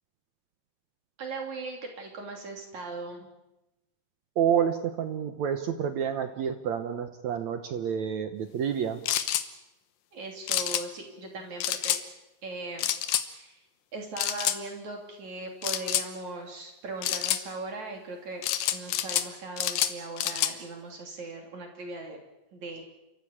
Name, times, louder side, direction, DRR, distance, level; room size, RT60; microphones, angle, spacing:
voice 1, 1.2-3.3 10.1-12.0 12.4-12.9 13.2-13.6 13.9-22.2 22.5-22.8, right 3 dB, 50° right, 2 dB, 4.2 m, -39 dB
voice 2, 4.4-9.1, right 8 dB, 65° right, 8 dB, 1.9 m, -29 dB
sound 1, 9.1-9.5 10.5-10.8 11.6-12.0 12.8-13.3 14.2-14.6 15.6-16.1 17.0-17.4 18.4-19.3 19.6-20.5, left 12 dB, 75° left, 2.7 m, -28 dB
29.5 x 14.5 x 8.7 m, 0.95 s
omnidirectional pair, 4.3 m